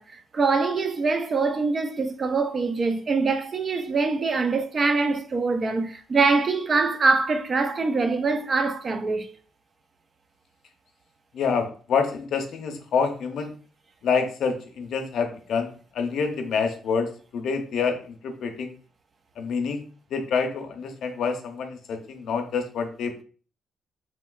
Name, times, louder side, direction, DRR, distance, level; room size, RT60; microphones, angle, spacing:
voice 1, 0.0-9.3, right 4 dB, 40° right, 0.4 m, -24 dB
voice 2, 11.3-13.5 14.0-18.8 19.4-19.8 20.1-23.1, left 5 dB, 70° left, 0.5 m, -27 dB
3.1 x 2.9 x 2.3 m
cardioid pair, 90°, 0 cm